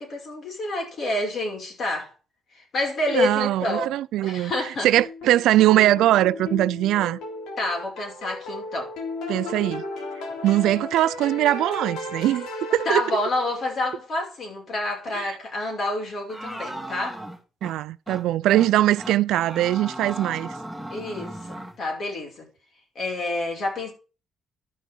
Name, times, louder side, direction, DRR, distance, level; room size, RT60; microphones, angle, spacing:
voice 1, 0.0-2.1 2.5-4.0 4.2-4.9 7.6-8.9 12.9-17.2 20.9-22.5 23.0-23.9, left 2 dB, 55° left, 5.8 m, -28 dB
voice 2, 3.1-7.2 9.3-9.8 10.4-12.5 12.7-13.0 15.1-15.4 17.6-20.5, right 14 dB, 85° right, 0.4 m, -21 dB
sound 1, 5.0-13.8, left 2 dB, 85° left, 3.2 m, -35 dB
sound 2, 16.3-17.7 18.1-18.2 18.5-18.7 19.0-21.8, right 1 dB, 5° left, 2.5 m, -36 dB
12.0 x 6.2 x 5.5 m
cardioid pair, 90°, 0 cm